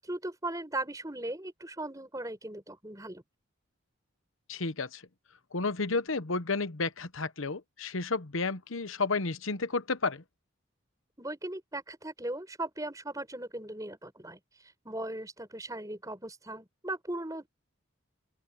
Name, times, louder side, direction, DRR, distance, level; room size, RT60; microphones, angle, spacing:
voice 1, 0.0-3.2 11.2-14.4 14.8-17.5, right 1 dB, 15° right, 5.1 m, -38 dB
voice 2, 4.5-5.0 5.5-10.2, left 3 dB, 75° left, 1.1 m, -31 dB
open air
head